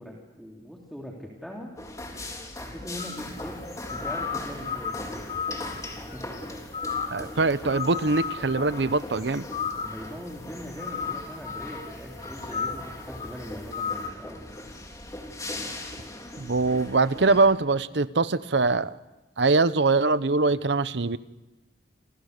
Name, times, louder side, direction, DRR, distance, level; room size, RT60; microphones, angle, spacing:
voice 1, 0.0-1.7 2.5-3.6 3.9-5.6 5.9-6.2 9.8-14.6, equal, ahead, -2 dB, 3.2 m, -41 dB
Construction Site Ambience in Thailand, 1.8-17.5, left 1 dB, 20° left, 3.8 m, -40 dB
sound 1, 3.0-3.5 3.9-6.4 6.7-7.3 7.7-9.0 9.5-10.2 10.8-11.9 12.2-13.3 13.7-14.1, left 6 dB, 40° left, 3.3 m, -34 dB
voice 2, 7.1-9.5 16.4-18.9 19.4-21.2, right 3 dB, 80° right, 15 dB, 0.9 m, -23 dB
29.0 x 27.0 x 6.7 m, 1.1 s
head